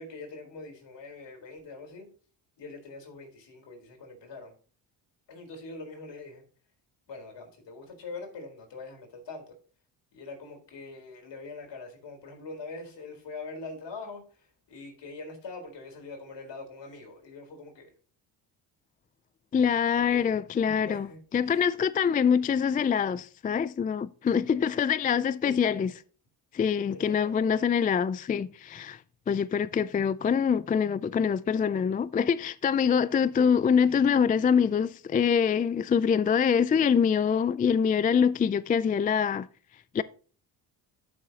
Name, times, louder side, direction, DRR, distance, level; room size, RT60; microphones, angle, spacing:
voice 1, 0.0-2.1 2.6-4.5 5.3-6.4 7.1-9.5 10.1-17.9 19.9-20.3 20.8-21.2 21.4-21.7 25.1-25.7 26.9-27.5, left 3 dB, 65° left, 3.9 m, -43 dB
voice 2, 19.5-21.1 21.3-25.9 26.5-29.0 29.3-39.5 39.9-40.0, left 7 dB, 20° left, 0.3 m, -25 dB
13.5 x 6.3 x 2.9 m
supercardioid pair, 65°, 46 cm